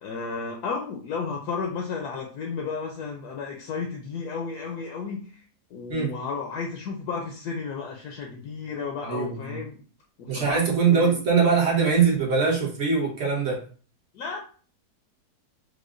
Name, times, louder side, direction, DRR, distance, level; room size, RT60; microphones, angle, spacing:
voice 1, 0.0-5.4 5.7-9.8 10.2-10.6 10.9-11.2 14.1-14.4, left 5 dB, 75° left, 1 dB, 1.1 m, -33 dB
voice 2, 9.0-9.6 10.3-13.6, right 5 dB, 45° right, -3 dB, 1.2 m, -22 dB
4.8 x 2.1 x 2.5 m, 0.41 s
omnidirectional pair, 1.8 m